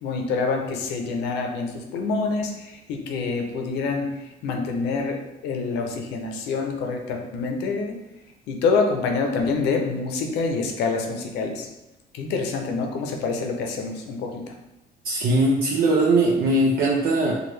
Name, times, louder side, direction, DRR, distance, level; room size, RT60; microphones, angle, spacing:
voice 1, 0.0-8.0 8.5-11.7 12.1-14.5, left 4 dB, 85° left, 3 dB, 0.7 m, -26 dB
voice 2, 15.0-17.4, right 2 dB, 60° right, -3 dB, 0.6 m, -20 dB
4.6 x 2.4 x 3.2 m, 0.95 s
cardioid pair, 110°, 17 cm